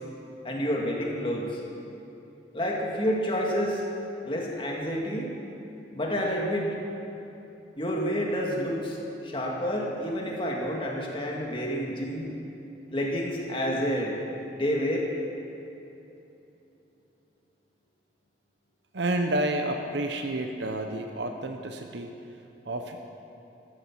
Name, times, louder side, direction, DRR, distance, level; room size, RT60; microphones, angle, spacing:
voice 1, 0.4-1.6 2.5-3.8 4.3-5.3 5.9-6.8 7.8-9.0 9.2-12.3 12.9-14.2 14.5-15.1, equal, 30° left, -2 dB, 2.1 m, -29 dB
voice 2, 18.9-22.1 22.6-23.0, right 1 dB, 85° right, 5 dB, 0.9 m, -30 dB
14.0 x 9.8 x 7.4 m, 3.0 s
head